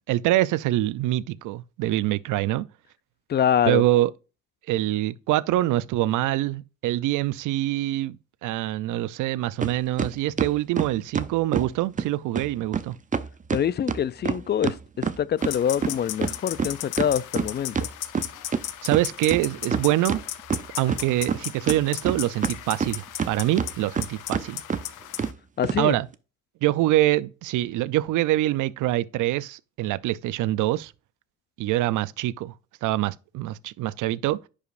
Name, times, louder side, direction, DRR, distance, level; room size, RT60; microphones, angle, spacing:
voice 1, 0.1-2.7 3.6-4.1 4.7-13.0 18.8-20.2 20.8-24.6 25.8-26.1 26.6-30.9 31.6-32.5 32.8-34.5, right 15 dB, 80° right, 0.5 m, -25 dB
voice 2, 3.3-3.8 13.5-17.9 25.6-26.0, left 9 dB, 35° left, 0.4 m, -25 dB
sound 1, 9.6-9.7 10.0-11.7 12.0-12.1 12.3-12.5 12.7-12.8 13.1-15.5 15.8-18.6 18.9-19.0 19.3-20.2 20.5-21.4 21.7-23.3 23.6-24.0 24.3-24.4 24.7-24.8 25.2-25.3 25.6-25.8, right 6 dB, 25° right, 0.6 m, -26 dB
sound 2, 15.4-25.3, left 13 dB, 85° left, 0.7 m, -36 dB
10.5 x 5.0 x 2.5 m
cardioid pair, 90°, 30 cm